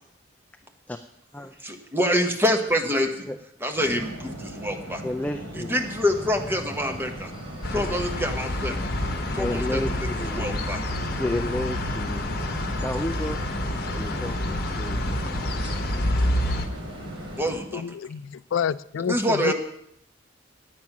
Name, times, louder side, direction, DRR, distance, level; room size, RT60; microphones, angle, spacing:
voice 1, 1.6-3.2 3.6-5.0 5.6-7.3 7.7-8.9 9.3-9.8 10.3-10.8 17.4-17.8 19.1-19.5, equal, 10° right, 3 dB, 1.2 m, -26 dB
sound 1, 3.7-17.6, equal, 85° right, 4.3 m, -38 dB
voice 2, 5.0-5.9 7.7-8.0 9.3-10.6 11.2-12.3 12.8-13.4 13.9-15.1, left 1 dB, 10° left, 7 dB, 0.4 m, -31 dB
sound 2, 5.8-17.5, equal, 25° right, 1.9 m, -44 dB
sound 3, 7.6-16.7, left 1 dB, 50° left, 1.1 m, -28 dB
voice 3, 17.7-19.5, left 7 dB, 90° left, 18 dB, 0.3 m, -28 dB
10.5 x 8.6 x 6.0 m, 0.74 s
head